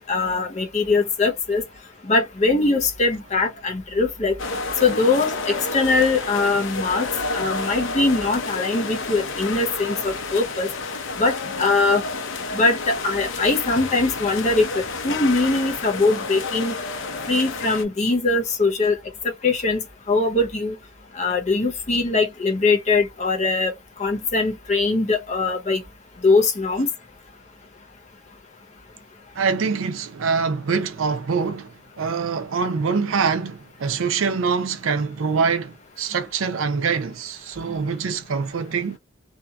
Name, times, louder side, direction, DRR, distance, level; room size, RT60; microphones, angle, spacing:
voice 1, 0.1-1.6 2.0-4.4 4.8-7.1 7.3-10.7 11.2-12.0 12.5-16.8 17.3-19.0 19.2-20.8 21.1-23.7 24.0-25.8 26.2-26.9, left 3 dB, 35° left, 0.7 m, -21 dB
sound 1, 4.4-17.8, left 3 dB, 70° left, 0.6 m, -30 dB
voice 2, 29.4-39.0, right 5 dB, 80° right, 0.5 m, -24 dB
2.7 x 2.5 x 2.2 m
head